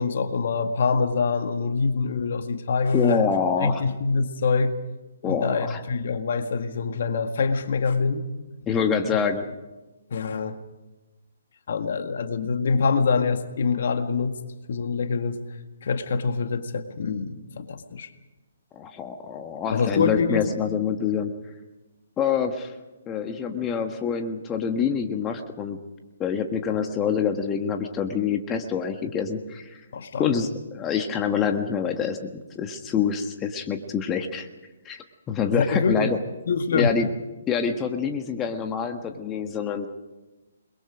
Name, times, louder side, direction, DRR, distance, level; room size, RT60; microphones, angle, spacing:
voice 1, 0.0-3.3 3.6-4.8 5.2-8.2 10.1-10.6 11.7-14.4 14.7-15.4 15.8-18.1 19.7-20.5 29.9-30.3 35.4-36.1 36.5-37.0, left 4 dB, 55° left, 8 dB, 1.8 m, -25 dB
voice 2, 2.9-3.8 5.2-5.8 8.7-9.4 18.7-21.3 22.2-22.7 23.1-25.8 26.2-29.8 30.1-34.5 34.8-36.2 36.7-37.1 37.5-39.9, left 7 dB, 20° left, 5 dB, 1.5 m, -26 dB
29.0 x 22.0 x 5.1 m, 1.1 s
figure-of-eight pair, 135°, 0 cm